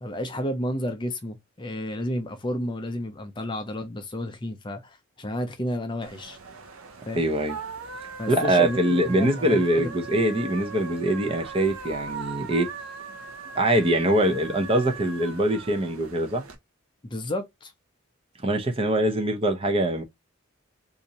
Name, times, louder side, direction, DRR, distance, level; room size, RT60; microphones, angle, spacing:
voice 1, 0.0-6.4 7.1-7.2 8.2-9.9 17.0-17.7, left 1 dB, 20° left, 0.5 m, -31 dB
sound 1, 6.0-16.5, right 5 dB, 90° right, 0.8 m, -39 dB
voice 2, 7.1-7.6 8.3-12.7 13.5-16.4 18.4-20.0, right 1 dB, 25° right, 0.6 m, -23 dB
2.7 x 2.5 x 4.0 m
head